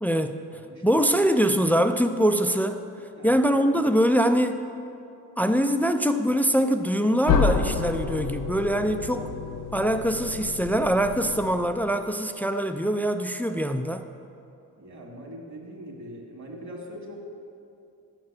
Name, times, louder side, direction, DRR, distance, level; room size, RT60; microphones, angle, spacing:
voice 1, 0.0-0.4 0.8-2.8 3.2-4.6 5.4-9.3 9.7-14.0, equal, 5° left, 7 dB, 0.3 m, -23 dB
voice 2, 0.5-1.1 3.1-3.3 14.8-17.2, equal, 45° right, 0 dB, 2.0 m, -42 dB
sound 1, 7.3-12.0, left 5 dB, 70° left, 1.0 m, -29 dB
7.4 x 6.1 x 6.1 m, 2.6 s
supercardioid pair, 65°, 40 cm